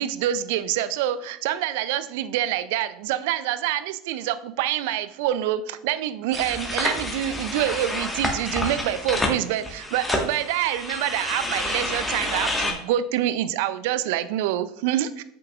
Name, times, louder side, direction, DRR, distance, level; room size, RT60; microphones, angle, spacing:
voice 1, 0.0-15.2, right 12 dB, 65° right, 14 dB, 0.4 m, -26 dB
sound 1, 6.3-12.7, left 2 dB, 10° left, 1.4 m, -29 dB
7.9 x 5.7 x 2.4 m, 0.74 s
hypercardioid pair, 80°, 0 cm